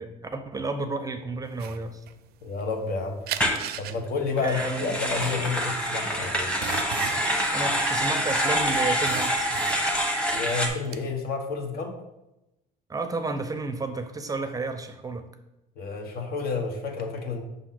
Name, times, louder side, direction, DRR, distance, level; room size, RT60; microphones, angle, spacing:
voice 1, 0.0-2.0 4.4-4.9 7.5-9.5 12.9-15.3, right 3 dB, 20° right, 7 dB, 0.5 m, -31 dB
sound 1, 1.6-2.9 3.3-8.5 8.8-10.2 10.5-11.0, right 11 dB, 70° right, 0.4 m, -36 dB
voice 2, 2.4-3.3 3.8-6.5 10.3-12.0 15.7-17.4, left 4 dB, 65° left, 4 dB, 1.2 m, -30 dB
sound 2, 3.4-3.6 4.4-10.7, equal, 5° left, 1.1 m, -26 dB
6.9 x 2.7 x 5.8 m, 0.93 s
cardioid pair, 110°, 17 cm